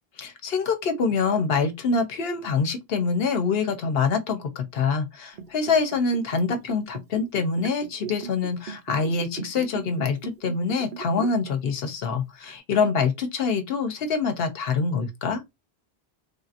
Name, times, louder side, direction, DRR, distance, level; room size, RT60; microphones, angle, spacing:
voice 1, 0.2-15.4, left 4 dB, 70° left, 0.9 m, -25 dB
Liquid, 5.3-11.5 11.8-11.9, right 7 dB, 55° right, 0.7 m, -38 dB
3.4 x 2.7 x 2.5 m
omnidirectional pair, 1.1 m